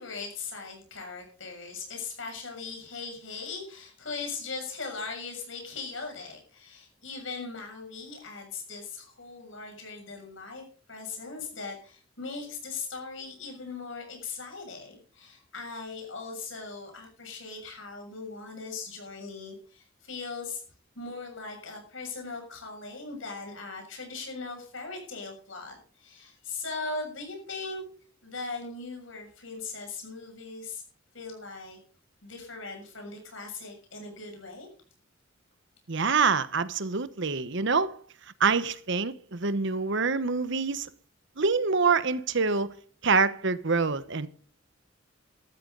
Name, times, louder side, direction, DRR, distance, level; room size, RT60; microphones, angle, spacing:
voice 1, 0.0-20.6 21.0-27.8 28.2-30.8 31.1-31.8 32.2-34.7, left 4 dB, 75° left, 7.0 m, -39 dB
voice 2, 35.9-37.9 38.4-40.9 41.4-42.7 43.0-44.3, right 4 dB, 65° right, 1.1 m, -26 dB
14.0 x 14.0 x 4.0 m
head